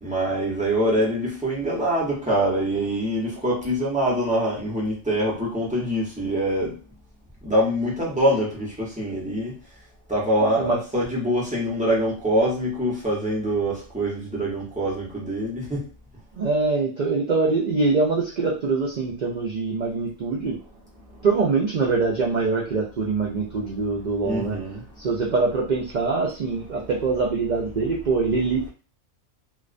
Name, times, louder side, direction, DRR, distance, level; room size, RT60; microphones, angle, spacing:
voice 1, 0.0-6.8 7.4-9.5 10.1-15.9 21.0-21.3 24.2-24.9, equal, 10° right, -6 dB, 0.6 m, -24 dB
voice 2, 16.3-20.6 21.2-24.6 25.0-28.7, right 4 dB, 75° right, -2 dB, 0.4 m, -24 dB
2.3 x 2.1 x 2.4 m, 0.36 s
omnidirectional pair, 1.3 m